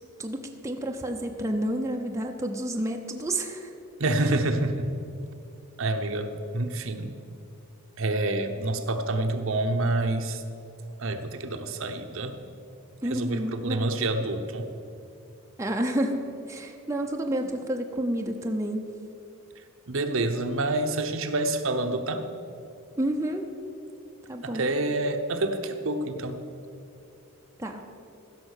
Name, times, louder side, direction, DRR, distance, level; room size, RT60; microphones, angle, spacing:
voice 1, 0.2-3.7 13.0-14.1 15.6-18.8 23.0-23.4 24.3-24.7 27.6-27.8, right 1 dB, 15° right, 2 dB, 0.7 m, -30 dB
voice 2, 4.0-4.9 5.8-7.1 8.0-10.4 11.0-12.4 13.0-14.7 19.9-22.3 24.4-26.4, right 2 dB, 60° right, 7 dB, 0.8 m, -27 dB
15.5 x 6.3 x 6.5 m, 2.6 s
head